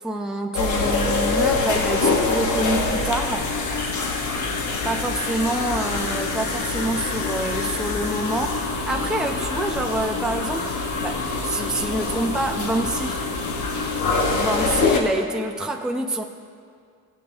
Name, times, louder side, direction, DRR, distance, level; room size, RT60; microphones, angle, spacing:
voice 1, 0.0-3.5 4.8-10.7 11.0-13.2 14.4-16.2, right 1 dB, ahead, 2 dB, 0.7 m, -26 dB
sound 1, 0.5-15.0, left 3 dB, 75° left, 1.4 m, -25 dB
15.5 x 8.1 x 3.5 m, 2.2 s
cardioid pair, 90°, 30 cm